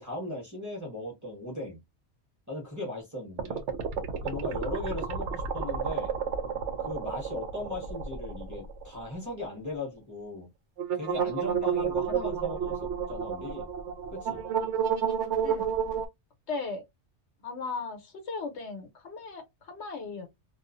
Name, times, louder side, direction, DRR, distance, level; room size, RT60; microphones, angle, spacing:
voice 1, 0.0-1.8 2.5-3.6 4.2-6.1 6.8-10.5 10.9-13.7 14.1-14.4, left 1 dB, 15° right, 1.0 m, -38 dB
sound 1, 3.4-9.1 9.4-9.5 10.8-16.0, right 7 dB, 75° right, 0.9 m, -31 dB
voice 2, 16.5-16.8 17.4-20.3, left 4 dB, 70° left, 1.0 m, -37 dB
2.4 x 2.4 x 2.4 m
omnidirectional pair, 1.2 m